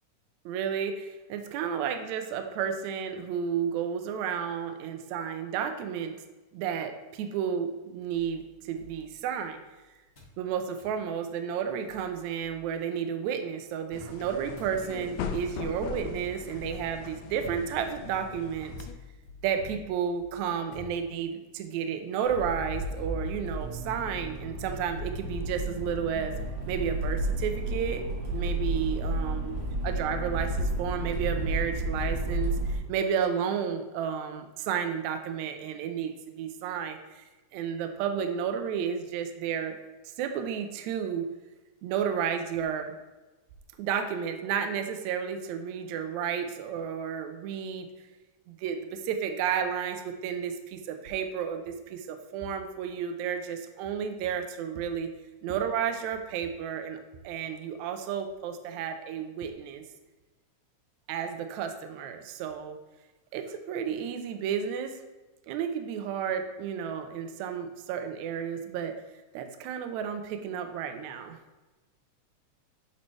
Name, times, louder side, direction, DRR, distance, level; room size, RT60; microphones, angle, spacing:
voice 1, 0.5-6.2 6.5-9.6 10.4-18.7 19.4-26.3 26.7-28.0 28.3-29.6 29.8-39.8 40.2-41.3 41.8-42.9 43.8-47.9 48.5-55.1 55.4-57.0 57.2-59.8 61.1-62.8 63.3-64.9 65.5-69.0 69.3-71.4, right 7 dB, 75° right, 6 dB, 1.8 m, -32 dB
sound 1, 8.1-9.7 10.1-10.4 10.8-11.0 11.5-11.6 11.8-12.9 13.9-21.5, left 3 dB, 25° left, 1.6 m, -49 dB
sound 2, 13.9-18.9, left 6 dB, 80° left, 1.5 m, -39 dB
Accelerating revving vroom, 22.2-32.8, right 1 dB, 55° right, 1.9 m, -32 dB
9.6 x 4.1 x 3.3 m, 1.1 s
omnidirectional pair, 3.7 m